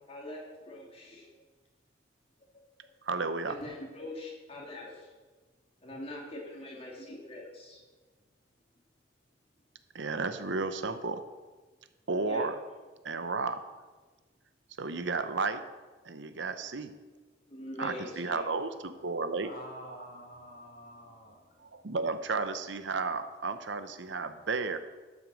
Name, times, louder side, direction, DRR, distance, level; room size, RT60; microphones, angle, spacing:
voice 1, 0.1-1.3 3.5-5.1 5.8-7.8 12.3-12.5 17.5-18.5, left 1 dB, 30° left, -2 dB, 2.7 m, -43 dB
voice 2, 3.0-3.6 9.9-11.2 12.1-12.6 13.0-13.6 14.8-15.6 16.0-16.9 17.8-19.5 21.7-24.8, right 4 dB, 70° right, 10 dB, 0.8 m, -33 dB
voice 3, 19.4-21.6, equal, 50° left, 0 dB, 2.3 m, -48 dB
12.0 x 7.3 x 6.2 m, 1.3 s
head